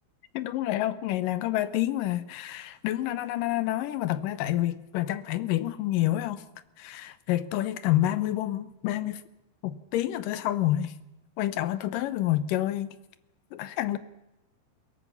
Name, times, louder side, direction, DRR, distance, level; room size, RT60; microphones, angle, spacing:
voice 1, 0.3-6.5 6.8-9.2 9.6-10.9 11.4-12.9 13.5-14.0, left 14 dB, 80° left, 2.5 m, -28 dB
22.0 x 16.5 x 7.1 m
omnidirectional pair, 3.8 m